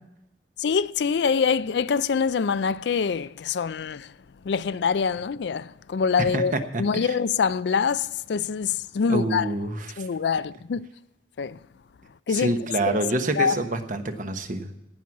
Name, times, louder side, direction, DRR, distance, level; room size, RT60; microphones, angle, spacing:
voice 1, 0.6-4.1 4.5-6.5 6.8-9.5 10.0-10.9 11.4-11.6 12.3-12.6 12.9-13.0 13.4-13.6, left 6 dB, 70° left, 0.4 m, -25 dB
voice 2, 6.2-7.1 9.1-10.0 12.3-14.7, right 2 dB, 45° right, 1.2 m, -27 dB
17.5 x 6.3 x 7.2 m
head